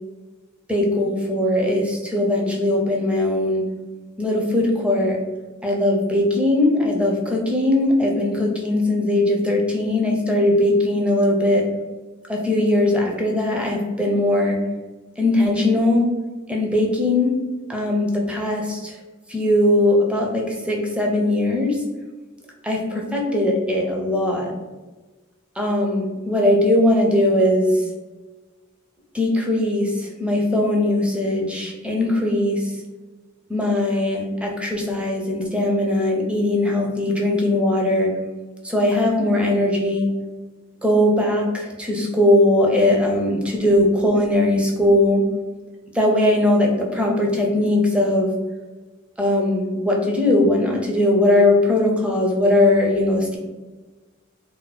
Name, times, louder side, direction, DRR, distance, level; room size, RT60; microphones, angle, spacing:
voice 1, 0.7-3.6 4.2-5.2 5.6-11.7 12.3-14.6 15.2-16.1 16.5-17.4 17.7-19.0 19.3-21.8 22.6-24.5 25.6-27.8 29.1-32.7 33.5-38.1 38.6-40.1 40.8-45.3 45.9-48.3 49.2-53.4, left 1 dB, 5° right, 0 dB, 0.5 m, -20 dB
2.7 x 2.0 x 3.9 m, 1.2 s
head